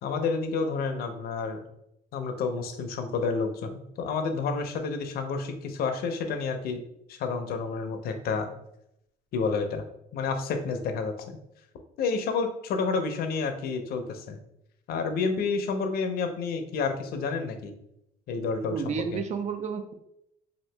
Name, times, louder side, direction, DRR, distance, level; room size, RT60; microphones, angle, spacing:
voice 1, 0.0-1.6 2.1-6.8 7.1-8.5 9.3-9.8 10.1-11.4 12.0-14.4 14.9-17.7 18.3-19.2, left 4 dB, 65° left, 6 dB, 0.6 m, -30 dB
voice 2, 18.7-19.9, right 6 dB, 45° right, 9 dB, 0.4 m, -31 dB
2.8 x 2.5 x 3.3 m, 0.80 s
cardioid pair, 110°, 17 cm